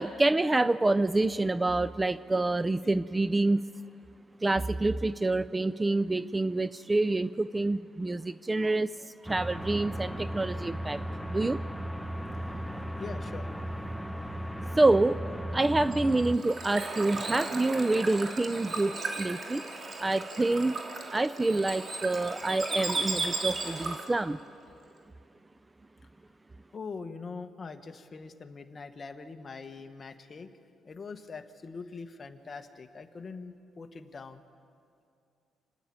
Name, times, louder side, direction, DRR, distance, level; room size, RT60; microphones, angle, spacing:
voice 1, 0.0-3.6 4.4-11.0 11.3-11.6 14.8-15.2 15.5-19.6 20.0-20.8 21.1-24.4, right 2 dB, 20° right, 15 dB, 0.4 m, -27 dB
sound 1, 9.3-16.4, equal, ahead, 1.0 m, -36 dB
voice 2, 13.0-13.5 26.7-30.5 30.8-34.4, left 4 dB, 35° left, 7 dB, 1.4 m, -43 dB
Bird / Water, 15.8-24.2, right 3 dB, 40° right, 3.0 m, -35 dB
28.5 x 10.5 x 8.8 m, 2.5 s
cardioid pair, 90°, 0 cm